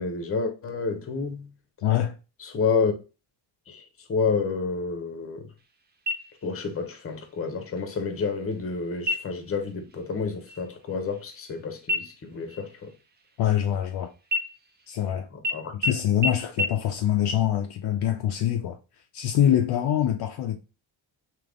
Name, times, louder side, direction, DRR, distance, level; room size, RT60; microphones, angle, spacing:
voice 1, 0.0-1.5 2.4-3.0 3.7-5.5 6.4-12.9 15.5-15.7, left 5 dB, 30° left, 0.8 m, -29 dB
voice 2, 1.8-2.2 13.4-14.1 14.9-15.3 15.7-18.8 19.1-20.6, left 10 dB, 55° left, 0.5 m, -24 dB
sound 1, 6.1-6.7 7.1-7.2 7.8-8.3 9.0-9.5 9.9-10.2 10.5-11.6 11.9-13.9 14.3-15.1 15.4-15.5 15.8-15.9 16.2-16.3 16.6-16.7, left 1 dB, 25° right, 0.5 m, -30 dB
3.5 x 2.9 x 3.5 m
cardioid pair, 145°, 46 cm